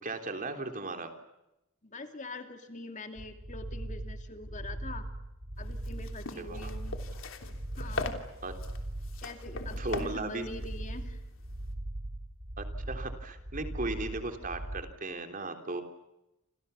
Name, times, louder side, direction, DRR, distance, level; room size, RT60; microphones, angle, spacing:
voice 1, 0.0-1.1 6.4-6.7 8.4-8.5 9.8-10.5 12.6-15.8, right 2 dB, 40° right, 6 dB, 3.5 m, -36 dB
voice 2, 1.8-5.1 5.6-7.0 7.8-8.2 9.2-11.2, left 2 dB, 35° left, 6 dB, 2.7 m, -44 dB
sound 1, 3.2-14.8, right 1 dB, 55° right, 2.3 m, -40 dB
sound 2, 5.6-11.7, left 3 dB, 70° left, 3.2 m, -41 dB
29.0 x 27.0 x 7.1 m, 0.91 s
head